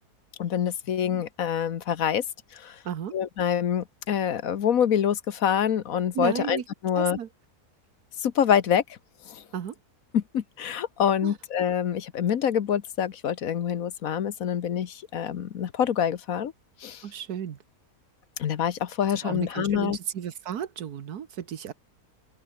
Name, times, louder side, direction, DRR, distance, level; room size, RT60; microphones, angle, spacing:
voice 1, 0.4-2.2 2.5-2.7 3.1-7.2 8.2-8.8 9.3-9.4 10.1-16.5 16.8-17.0 18.4-20.0, left 9 dB, 65° left, 1.4 m, -26 dB
voice 2, 6.1-6.6 6.9-7.3 9.5-9.7 11.2-11.4 17.0-17.6 19.2-21.7, right 9 dB, 80° right, 1.7 m, -33 dB
open air
omnidirectional pair, 1.6 m